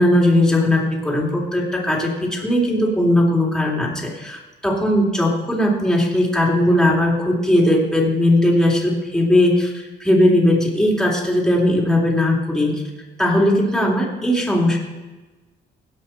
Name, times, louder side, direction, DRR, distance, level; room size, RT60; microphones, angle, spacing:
voice 1, 0.0-12.8 13.2-14.8, left 1 dB, 5° left, -2 dB, 3.3 m, -18 dB
17.5 x 5.9 x 4.5 m, 1.2 s
cardioid pair, 90°, 20 cm